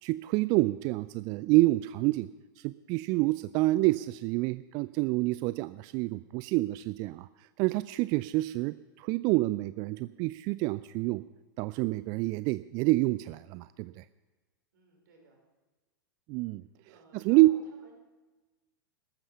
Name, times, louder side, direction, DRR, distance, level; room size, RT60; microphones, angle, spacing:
voice 1, 0.0-2.3 2.6-7.3 7.6-11.2 11.6-14.0 16.3-16.7 17.1-17.5, right 20 dB, 35° right, 16 dB, 0.3 m, -27 dB
voice 2, 14.7-15.4 16.9-18.0, right 2 dB, 60° right, 1 dB, 4.9 m, -58 dB
14.5 x 12.5 x 5.5 m, 1.2 s
figure-of-eight pair, 95°, 12 cm